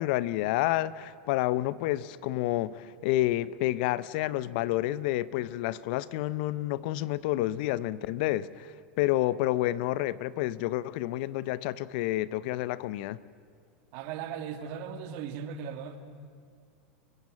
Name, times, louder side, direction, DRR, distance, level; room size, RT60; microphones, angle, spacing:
voice 1, 0.0-13.2, left 15 dB, 60° left, 18 dB, 0.7 m, -29 dB
voice 2, 13.9-16.0, right 7 dB, 60° right, 7 dB, 2.3 m, -37 dB
29.5 x 16.5 x 7.5 m, 2.2 s
hypercardioid pair, 100°, 6 cm